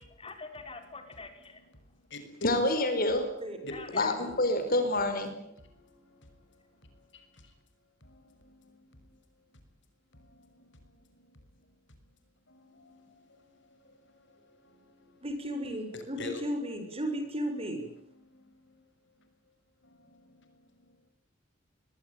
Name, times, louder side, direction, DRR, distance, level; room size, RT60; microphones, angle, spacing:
voice 1, 0.0-1.6 3.7-4.1, left 3 dB, 30° left, 6 dB, 5.2 m, -45 dB
voice 2, 2.4-3.3 3.9-5.3, left 2 dB, 50° left, 8 dB, 4.9 m, -27 dB
voice 3, 3.6-4.3 5.7-7.5 8.0-9.1 10.1-11.4 12.5-15.2 15.9-16.4 18.2-18.8 19.8-21.0, left 2 dB, 65° left, 7 dB, 6.4 m, -49 dB
voice 4, 15.2-17.9, equal, 30° right, 6 dB, 7.1 m, -34 dB
26.5 x 21.5 x 9.4 m, 0.72 s
head